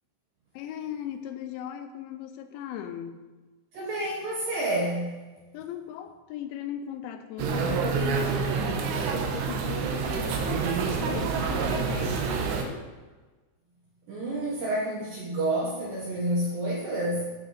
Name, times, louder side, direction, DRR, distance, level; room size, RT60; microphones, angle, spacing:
voice 1, 0.5-3.2 5.5-12.9, left 10 dB, 80° left, 8 dB, 2.9 m, -38 dB
voice 2, 3.7-5.2 14.1-17.3, right 1 dB, 70° right, -4 dB, 2.3 m, -29 dB
sound 1, 7.4-12.6, right 5 dB, 85° right, 3.5 m, -27 dB
13.0 x 6.1 x 4.2 m, 1.3 s
omnidirectional pair, 5.5 m